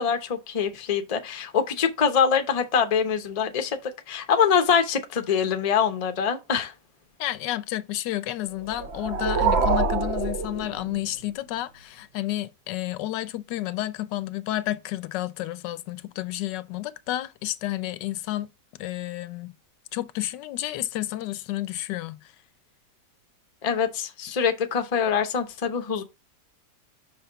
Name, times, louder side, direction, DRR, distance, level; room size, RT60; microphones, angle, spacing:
voice 1, 0.0-3.8 4.1-6.7 23.6-26.0, left 7 dB, 40° left, 0.6 m, -24 dB
voice 2, 7.2-18.5 18.8-19.5 19.9-22.3, left 14 dB, 85° left, 1.2 m, -31 dB
sound 1, 8.6-11.2, right 4 dB, 55° right, 0.8 m, -25 dB
5.9 x 3.5 x 5.6 m
omnidirectional pair, 1.9 m